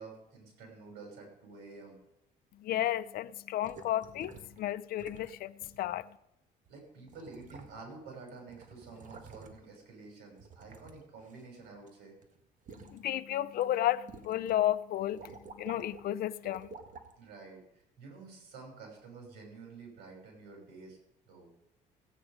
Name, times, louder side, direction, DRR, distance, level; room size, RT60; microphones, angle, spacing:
voice 1, 0.0-2.0 6.7-12.1 17.2-17.6 18.0-21.0 21.2-21.5, right 4 dB, 85° right, 6.2 m, -49 dB
voice 2, 2.6-6.1 12.7-16.7, left 13 dB, 60° left, 0.6 m, -33 dB
sound 1, 3.6-4.6 5.0-5.3 5.6-5.8 6.7-6.8 7.1-8.0 8.3-9.8 10.4-11.9 12.2-13.0 13.5-13.6 14.1-14.7 14.9-16.0 16.4-17.1 17.8-17.9, right 4 dB, 50° right, 1.6 m, -51 dB
16.0 x 9.1 x 5.1 m
cardioid pair, 110°, 17 cm